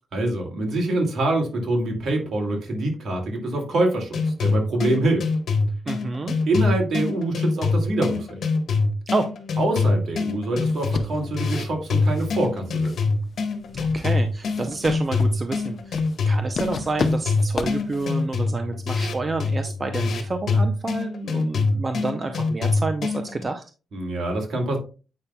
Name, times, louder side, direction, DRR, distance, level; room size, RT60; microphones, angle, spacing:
voice 1, 0.1-5.2 6.5-8.4 9.6-12.9 23.9-24.8, right 2 dB, 65° right, 1 dB, 2.3 m, -25 dB
sound 1, 4.1-23.4, left 4 dB, 65° left, 1.3 m, -25 dB
voice 2, 5.9-6.3 9.1-9.3 13.7-16.0 16.3-23.6, right 3 dB, 30° right, 6 dB, 0.6 m, -29 dB
sound 2, 10.6-18.2, left 4 dB, 50° left, 0.8 m, -34 dB
8.4 x 5.6 x 2.3 m, 0.34 s
cardioid pair, 105°, 0 cm